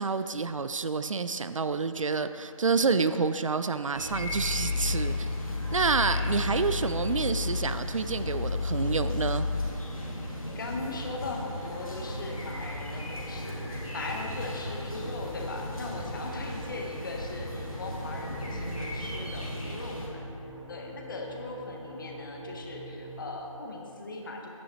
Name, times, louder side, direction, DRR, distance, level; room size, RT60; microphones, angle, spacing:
voice 1, 0.0-5.3 5.7-9.5, right 4 dB, 65° right, 11 dB, 0.4 m, -28 dB
sound 1, 3.9-20.1, equal, 85° left, 2.2 m, -37 dB
sound 2, 4.1-9.7, left 4 dB, 55° left, 0.4 m, -31 dB
voice 2, 10.1-20.2 20.7-24.5, left 2 dB, 35° left, 1 dB, 1.1 m, -39 dB
sound 3, 13.1-23.3, equal, 25° right, 1.8 m, -45 dB
11.0 x 9.7 x 3.0 m, 2.8 s
figure-of-eight pair, 160°, 18 cm